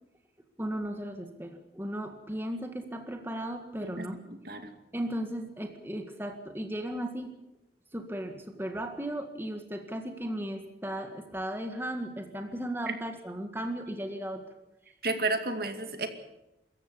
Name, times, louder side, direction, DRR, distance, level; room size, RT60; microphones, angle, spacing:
voice 1, 0.6-4.2 4.9-7.3 7.9-14.4, right 1 dB, 15° right, 5 dB, 1.7 m, -36 dB
voice 2, 15.0-16.1, right 3 dB, 60° right, 7 dB, 2.3 m, -31 dB
25.0 x 14.5 x 8.3 m, 0.93 s
head